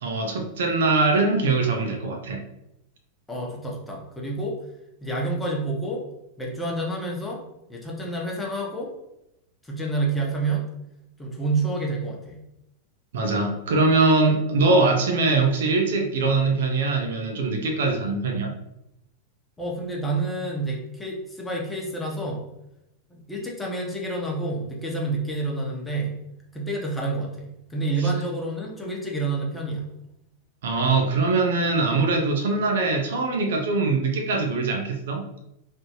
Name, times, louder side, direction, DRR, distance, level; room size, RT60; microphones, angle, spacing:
voice 1, 0.0-2.4 13.1-18.5 28.0-28.1 30.6-35.2, right 3 dB, 60° right, 3 dB, 0.5 m, -22 dB
voice 2, 3.3-4.6 5.0-6.1 6.4-7.4 7.7-8.9 9.6-10.7 11.2-12.4 19.6-22.4 23.1-26.2 26.5-29.9, right 2 dB, 10° left, -2 dB, 0.7 m, -28 dB
3.2 x 2.0 x 2.9 m, 0.86 s
figure-of-eight pair, 90°, 0 cm